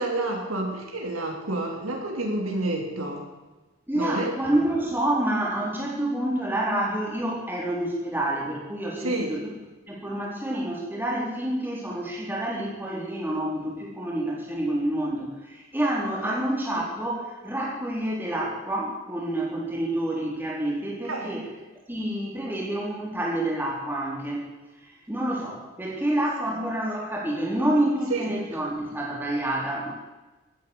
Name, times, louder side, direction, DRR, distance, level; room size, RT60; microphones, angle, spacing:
voice 1, 0.0-3.3 3.9-4.3 9.0-9.3 16.2-16.4 21.0-21.3 28.1-28.6, right 2 dB, 85° right, 1 dB, 3.5 m, -29 dB
voice 2, 3.9-9.5 9.9-21.4 21.9-24.5 25.1-29.9, right 1 dB, 10° right, -4 dB, 3.9 m, -28 dB
16.0 x 9.5 x 8.6 m, 1.1 s
head